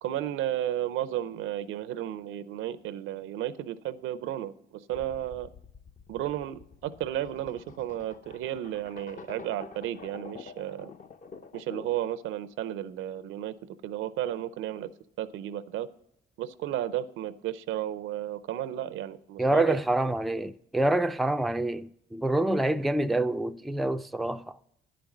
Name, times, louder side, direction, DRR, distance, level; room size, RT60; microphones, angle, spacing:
voice 1, 0.0-5.5 6.1-10.9 11.5-13.5 13.8-14.9 15.2-15.9 16.4-19.8, right 12 dB, 85° right, 0.5 m, -33 dB
sound 1, 4.9-12.1, left 5 dB, 40° left, 0.6 m, -48 dB
voice 2, 19.4-24.6, right 1 dB, ahead, 0.3 m, -27 dB
10.0 x 5.2 x 7.1 m
cardioid pair, 90°, 20 cm